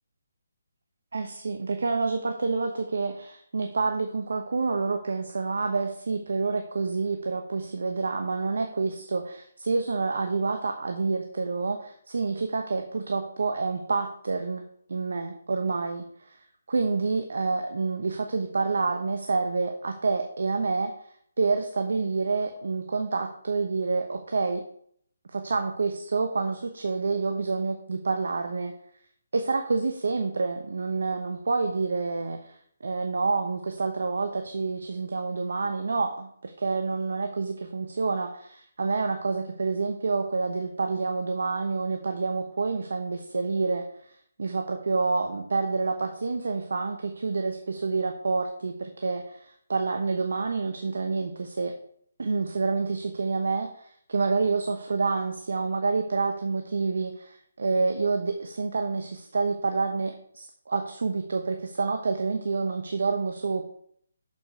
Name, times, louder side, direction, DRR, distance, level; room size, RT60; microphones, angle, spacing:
voice 1, 1.1-14.6 14.9-16.4 16.7-20.9 21.4-24.6 25.3-28.7 29.3-44.1 44.4-51.7 52.2-63.7, right 4 dB, 65° right, 6 dB, 1.0 m, -28 dB
7.2 x 6.9 x 4.7 m, 0.65 s
figure-of-eight pair, 145°, 0 cm